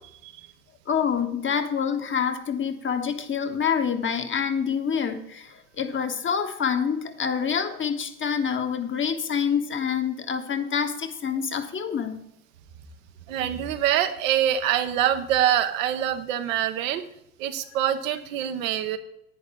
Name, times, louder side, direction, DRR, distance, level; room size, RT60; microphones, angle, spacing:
voice 1, 0.9-12.1, left 7 dB, 25° left, 7 dB, 1.2 m, -27 dB
voice 2, 13.3-17.0 17.4-19.0, right 10 dB, 60° right, 8 dB, 1.1 m, -25 dB
10.5 x 9.6 x 3.8 m, 0.77 s
figure-of-eight pair, 70°, 45 cm